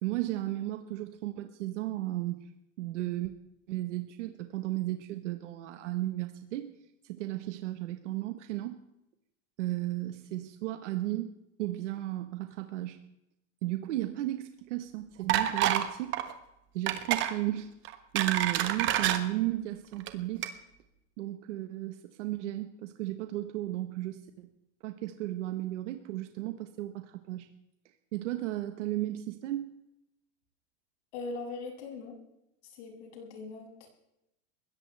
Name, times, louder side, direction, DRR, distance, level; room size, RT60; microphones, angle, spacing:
voice 1, 0.0-2.5 2.8-3.3 3.7-6.7 7.0-8.8 9.6-11.3 11.6-13.0 13.6-16.2 16.7-17.7 18.1-20.4 21.2-24.5 24.8-27.5 28.1-29.7, right 15 dB, 75° right, 7 dB, 1.4 m, -34 dB
sound 1, 15.3-15.9 16.1-16.3 16.9-17.3 17.8-19.2 19.9-20.1 20.4-20.5, right 12 dB, 30° right, 1.4 m, -28 dB
voice 2, 31.1-32.2 32.6-33.9, left 3 dB, 70° left, 0 dB, 7.8 m, -41 dB
21.5 x 17.5 x 3.4 m, 0.85 s
supercardioid pair, 165°, 36 cm